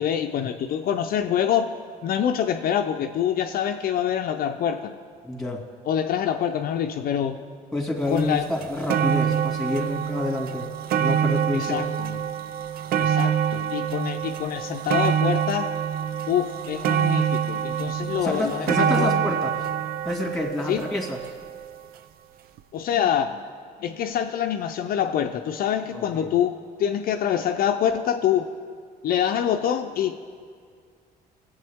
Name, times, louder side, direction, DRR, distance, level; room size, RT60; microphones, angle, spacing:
voice 1, 0.0-1.8 2.0-4.9 5.9-7.4 8.1-8.5 11.5-12.3 13.0-15.7 16.3-19.2 20.7-20.9 22.7-23.5 23.8-28.5 29.0-30.2, left 9 dB, 60° left, 5 dB, 0.5 m, -25 dB
voice 2, 5.2-5.6 7.7-10.7 11.0-11.8 18.2-19.5 20.0-21.2 25.9-26.3, left 1 dB, ahead, 0 dB, 2.3 m, -28 dB
sound 1, 8.2-8.3 8.6-21.8 22.6-22.7, right 9 dB, 65° right, 0.5 m, -26 dB
22.0 x 8.0 x 3.6 m, 2.1 s
cardioid pair, 110°, 17 cm